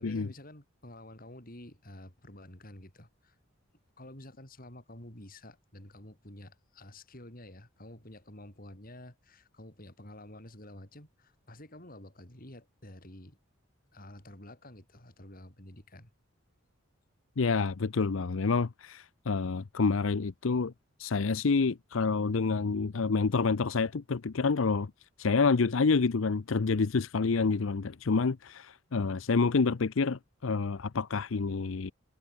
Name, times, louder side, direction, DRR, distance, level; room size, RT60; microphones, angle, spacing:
voice 1, 0.0-3.4 4.0-13.4 13.9-16.1, left 1 dB, 45° left, 5.3 m, -50 dB
voice 2, 17.4-20.7 21.0-24.9 25.2-31.9, left 4 dB, 75° left, 0.6 m, -28 dB
head